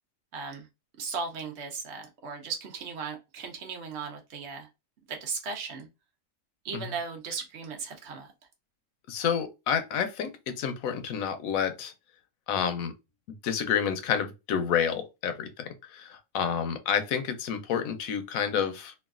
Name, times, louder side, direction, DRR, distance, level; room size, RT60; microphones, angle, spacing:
voice 1, 0.3-0.7 1.0-4.7 5.1-5.9 6.6-8.3, right 5 dB, 55° right, 1.0 m, -37 dB
voice 2, 9.1-11.9 12.5-12.9 13.4-18.9, left 7 dB, 75° left, 1.0 m, -29 dB
3.0 x 2.4 x 2.4 m
omnidirectional pair, 1.5 m